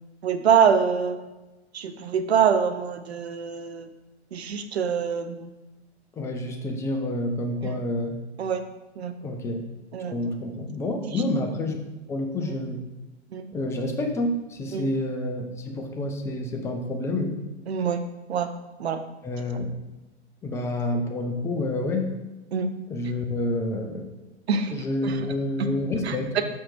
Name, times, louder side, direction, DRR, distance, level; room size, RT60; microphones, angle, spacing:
voice 1, 0.2-1.2 1.7-3.9 4.3-5.5 7.6-7.7 8.4-8.6 9.0-9.1 9.9-10.1 11.1-11.2 12.5-12.6 13.3-13.4 14.7-14.9 17.7-18.0 18.3-18.5 18.8-19.0 22.5-22.7 24.5-24.7 25.0-25.2 25.6-25.7 26.0-26.4, right 7 dB, 70° right, 9 dB, 0.7 m, -24 dB
voice 2, 6.1-8.1 9.2-9.6 10.1-11.8 12.1-12.8 13.5-17.4 19.2-19.7 20.4-22.1 22.9-24.1 24.7-26.4, left 1 dB, 10° left, 3 dB, 0.5 m, -28 dB
5.7 x 4.4 x 4.9 m, 1.1 s
figure-of-eight pair, 105°, 33 cm